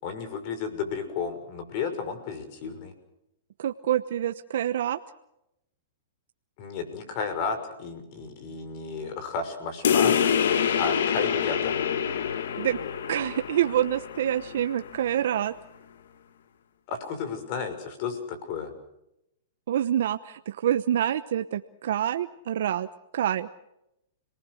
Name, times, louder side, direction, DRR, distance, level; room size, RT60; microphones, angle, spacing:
voice 1, 0.0-2.9 6.6-11.8 16.9-18.7, left 5 dB, 45° left, 9 dB, 6.0 m, -33 dB
voice 2, 3.6-5.0 12.6-12.8 13.1-15.5 19.7-22.9 23.1-23.5, right 11 dB, 70° right, 10 dB, 0.9 m, -26 dB
sound 1, 9.8-14.9, left 8 dB, 75° left, 1.8 m, -26 dB
30.0 x 19.5 x 6.5 m, 0.85 s
hypercardioid pair, 130°, 0 cm